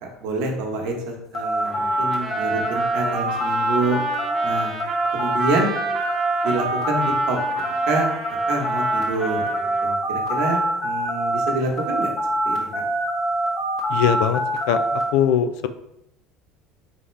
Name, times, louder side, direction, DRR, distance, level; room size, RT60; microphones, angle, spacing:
voice 1, 0.0-4.0 4.4-4.7 5.1-5.7 6.4-7.4 7.9-8.1 8.5-12.1 12.4-12.7, right 2 dB, 75° right, 2 dB, 1.0 m, -27 dB
sound 1, 1.3-11.5 11.8-15.0, right 1 dB, 45° left, 1.6 m, -24 dB
Trumpet, 1.6-10.0, right 5 dB, 30° right, 0.9 m, -33 dB
voice 2, 13.9-14.4 14.7-15.7, left 9 dB, 75° left, 10 dB, 0.4 m, -21 dB
4.2 x 3.5 x 3.2 m, 0.80 s
supercardioid pair, 100°, 0 cm